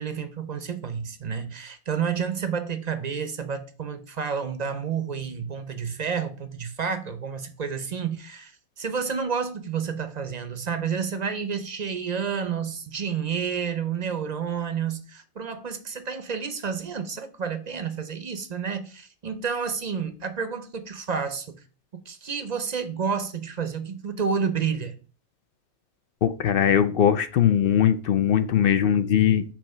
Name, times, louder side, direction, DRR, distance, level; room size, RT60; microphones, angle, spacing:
voice 1, 0.0-8.5 8.8-21.6 22.1-24.9, right 6 dB, 40° right, 0.6 m, -30 dB
voice 2, 26.2-29.4, left 9 dB, 65° left, 0.5 m, -20 dB
7.1 x 3.0 x 5.5 m
omnidirectional pair, 1.5 m